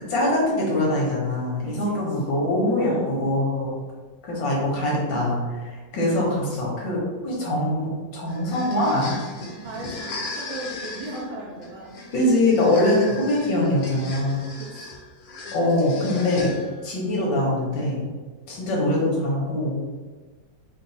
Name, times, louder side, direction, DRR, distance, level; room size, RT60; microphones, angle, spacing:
voice 1, 0.1-3.7 4.2-9.2 12.1-14.4 15.5-16.6 16.8-18.0 18.5-19.8, left 1 dB, 80° left, -4 dB, 1.9 m, -23 dB
voice 2, 1.6-2.2 2.7-3.1 9.6-12.0 14.6-14.9, right 2 dB, 85° right, -5 dB, 1.4 m, -36 dB
sound 1, 8.3-16.9, left 2 dB, 60° left, 1.2 m, -37 dB
4.5 x 2.2 x 4.0 m, 1.3 s
omnidirectional pair, 2.0 m